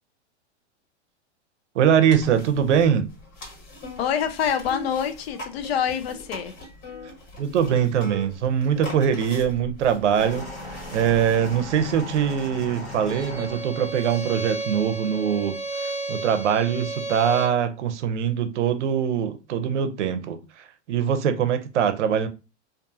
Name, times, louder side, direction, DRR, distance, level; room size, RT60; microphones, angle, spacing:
voice 1, 1.7-3.1 7.4-15.6 15.8-20.4 20.9-22.3, right 8 dB, 80° right, 0.6 m, -22 dB
sound 1, 2.1-12.2, left 2 dB, 40° left, 1.6 m, -42 dB
voice 2, 4.0-6.5, left 8 dB, 60° left, 0.6 m, -26 dB
sound 2, 10.2-14.3 15.2-15.3, left 2 dB, 20° left, 1.1 m, -38 dB
Bowed string instrument, 13.1-17.6, right 2 dB, 5° left, 0.7 m, -32 dB
2.5 x 2.3 x 2.6 m
hypercardioid pair, 150°, 35 cm